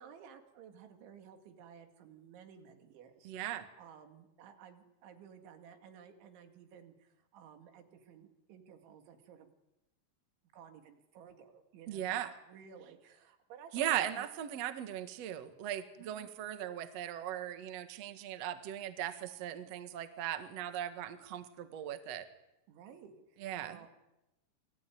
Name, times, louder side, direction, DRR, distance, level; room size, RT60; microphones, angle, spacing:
voice 1, 0.0-9.5 10.5-14.3 16.0-16.3 22.7-23.9, right 7 dB, 90° right, 6 dB, 4.7 m, -55 dB
voice 2, 3.2-3.7 11.9-12.3 13.7-22.3 23.4-23.8, right 11 dB, 55° right, 9 dB, 1.9 m, -38 dB
28.0 x 20.5 x 9.3 m, 0.97 s
omnidirectional pair, 5.2 m